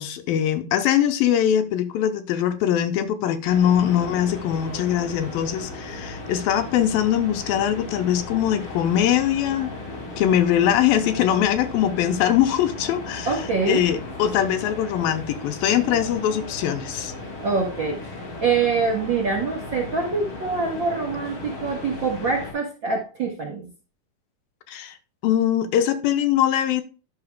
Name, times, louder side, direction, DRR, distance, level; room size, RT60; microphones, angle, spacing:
voice 1, 0.0-9.7 10.2-13.3 13.7-17.1 24.7-24.9 25.2-26.8, left 10 dB, 85° left, 2.5 m, -22 dB
sound 1, 3.4-22.5, left 2 dB, 40° left, 2.4 m, -36 dB
voice 2, 13.2-13.8 17.4-18.0 18.4-23.7, right 4 dB, 55° right, 1.3 m, -25 dB
11.5 x 5.9 x 2.3 m
omnidirectional pair, 4.2 m